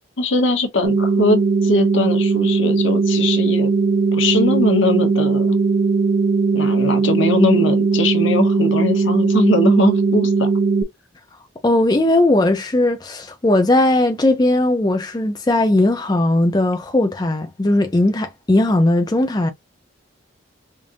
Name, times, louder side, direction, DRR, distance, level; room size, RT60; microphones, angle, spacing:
voice 1, 0.2-3.7 4.1-5.6 6.5-10.5, left 2 dB, 70° left, 1.0 m, -20 dB
sound 1, 0.8-10.8, right 4 dB, 70° right, 0.8 m, -18 dB
voice 2, 11.6-19.5, left 1 dB, 20° left, 0.4 m, -18 dB
5.0 x 2.5 x 2.6 m
head